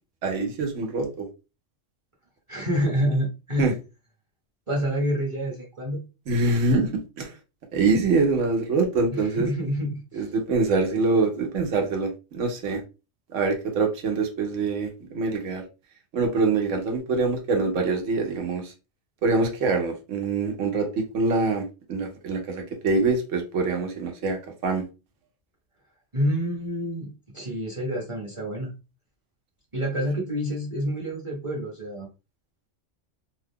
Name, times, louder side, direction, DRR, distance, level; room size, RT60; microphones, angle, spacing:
voice 1, 0.2-1.3 3.6-3.7 6.3-7.3 7.7-9.5 10.1-12.8 13.3-15.6 16.1-18.7 19.2-24.8, right 3 dB, 85° right, 1.2 m, -24 dB
voice 2, 2.5-3.8 4.7-6.0 9.1-10.3 26.1-28.7 29.7-32.1, equal, 30° right, 0.8 m, -28 dB
2.7 x 2.3 x 3.5 m
omnidirectional pair, 1.2 m